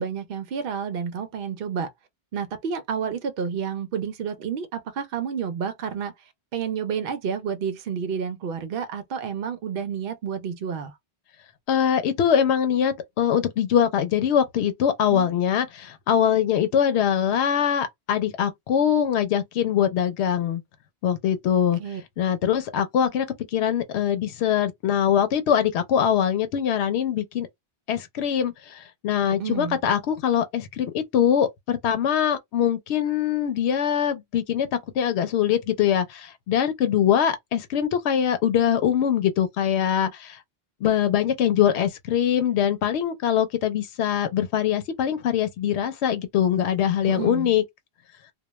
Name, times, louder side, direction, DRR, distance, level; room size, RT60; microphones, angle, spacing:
voice 1, 0.0-1.9 2.3-6.1 6.5-10.9 15.1-15.4 21.8-22.0 29.3-29.8 47.1-47.5, right 7 dB, 65° right, 0.7 m, -30 dB
voice 2, 11.7-20.6 21.0-21.8 22.2-23.3 23.5-27.5 27.9-34.7 34.9-40.4 40.8-47.6, left 9 dB, 85° left, 0.8 m, -23 dB
2.2 x 2.2 x 2.9 m
omnidirectional pair, 1.1 m